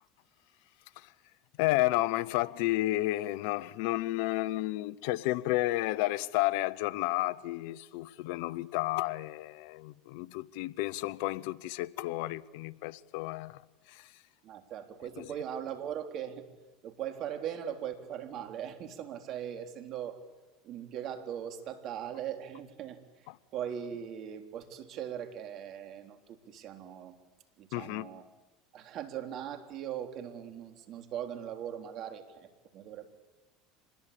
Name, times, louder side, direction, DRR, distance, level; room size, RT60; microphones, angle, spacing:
voice 1, 1.6-13.6 13.9-14.1 15.2-15.3 23.3-23.4 27.7-28.1, left 18 dB, 70° left, 0.8 m, -31 dB
voice 2, 14.4-16.4 16.8-20.2 20.6-23.3 23.5-27.2 27.6-28.3 28.7-33.1, right 9 dB, 55° right, 3.5 m, -40 dB
26.5 x 21.0 x 8.6 m
hypercardioid pair, 85°, 0 cm